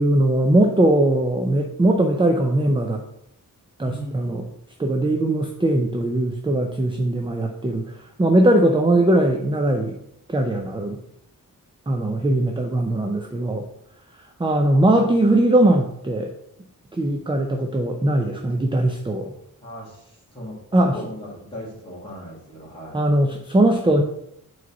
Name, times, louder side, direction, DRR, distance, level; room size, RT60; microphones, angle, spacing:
voice 1, 0.0-3.0 3.8-4.4 4.8-7.9 8.2-9.9 10.3-11.0 11.9-13.7 14.4-16.3 17.0-19.3 20.7-21.0 22.9-24.0, right 1 dB, 15° right, 3 dB, 0.4 m, -20 dB
voice 2, 3.8-4.4 19.6-20.0 20.3-20.6 20.9-23.0, equal, 15° left, -6 dB, 2.5 m, -37 dB
4.7 x 4.0 x 5.8 m, 0.76 s
wide cardioid pair, 170°, 34 cm